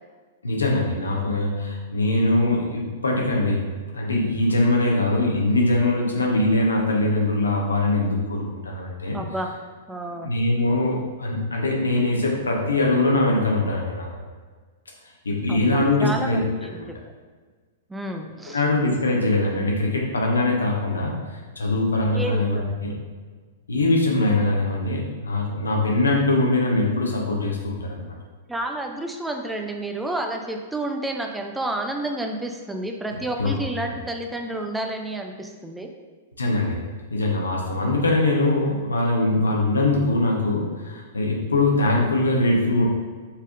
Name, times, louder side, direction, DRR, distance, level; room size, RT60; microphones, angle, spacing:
voice 1, 0.4-3.7 3.9-9.2 10.2-14.1 15.2-16.4 16.8-16.9 18.5-22.9 23.7-28.0 33.4-33.5 36.4-36.8 37.1-42.8, left 2 dB, 85° left, -1 dB, 0.9 m, -22 dB
voice 2, 9.1-9.5 9.9-10.3 15.5-16.4 16.7-17.0 17.9-18.6 22.1-22.7 28.5-35.9, right 1 dB, 5° right, 4 dB, 0.4 m, -30 dB
5.4 x 3.5 x 2.5 m, 1.5 s
hypercardioid pair, 105°, 0 cm